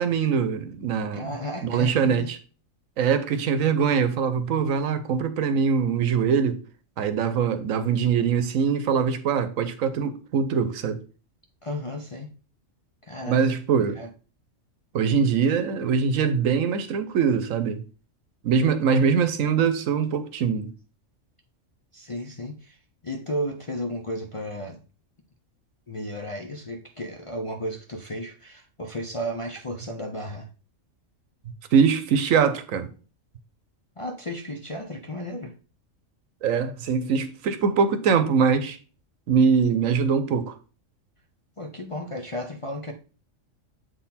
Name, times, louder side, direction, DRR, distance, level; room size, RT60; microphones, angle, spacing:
voice 1, 0.0-1.3 1.6-2.4 3.0-6.6 7.0-11.0 13.3-14.0 14.9-17.8 18.4-20.7 31.7-32.9 36.4-38.8 39.3-40.5, right 6 dB, 85° right, 1.2 m, -23 dB
voice 2, 1.1-2.3 11.6-12.3 13.0-13.4 13.7-14.1 21.9-22.8 23.0-24.8 25.9-30.5 34.0-35.5 41.6-42.9, equal, 40° left, 0.5 m, -33 dB
7.6 x 3.9 x 4.2 m
omnidirectional pair, 1.4 m